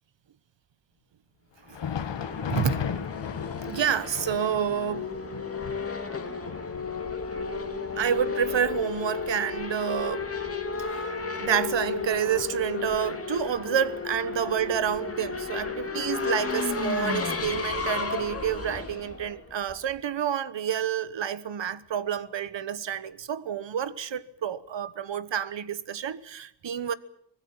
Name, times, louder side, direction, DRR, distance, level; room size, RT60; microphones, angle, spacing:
Thunder, 1.6-11.0 11.4-11.5 12.2-12.4 13.4-13.5, left 7 dB, 75° left, 1.6 m, -37 dB
Race car auto racing / Accelerating revving vroom, 1.8-20.0, left 4 dB, 30° left, 2.5 m, -33 dB
voice 1, 2.5-3.0 3.6-5.1 8.0-10.3 10.8-11.1 11.4-26.9, right 8 dB, 80° right, 1.2 m, -29 dB
25.0 x 19.5 x 7.3 m
wide cardioid pair, 165°, 44 cm